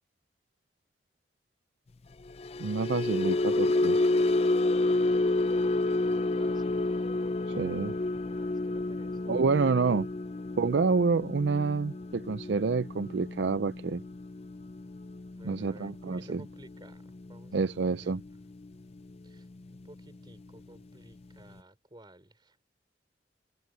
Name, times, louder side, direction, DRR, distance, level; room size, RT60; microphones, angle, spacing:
sound 1, 2.3-18.7 19.0-19.3 19.6-19.9, left 2 dB, 35° left, 0.5 m, -30 dB
voice 1, 2.6-4.0 7.5-7.9 9.3-10.1 10.6-14.0 15.4-16.4 17.5-18.2, right 4 dB, 70° right, 0.5 m, -28 dB
voice 2, 6.0-6.8 8.1-9.7 15.3-17.0 17.3-18.5 19.2-22.6, right 1 dB, 25° right, 3.4 m, -54 dB
open air
head